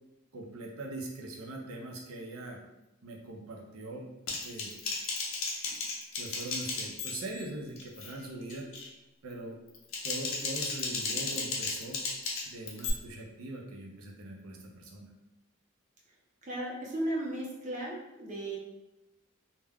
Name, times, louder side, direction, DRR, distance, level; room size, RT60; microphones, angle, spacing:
voice 1, 0.3-2.6 3.0-4.1 4.4-4.7 6.2-8.7 9.2-9.6 10.0-12.0 12.5-15.1, right 2 dB, 80° right, 0 dB, 0.5 m, -41 dB
Typing, 4.3-7.4 7.8-8.1 8.5-8.9 9.7-12.9, left 4 dB, 65° left, 0.5 m, -35 dB
voice 2, 16.4-18.6, right 1 dB, 35° right, -4 dB, 0.6 m, -35 dB
2.2 x 2.1 x 3.4 m, 0.97 s
head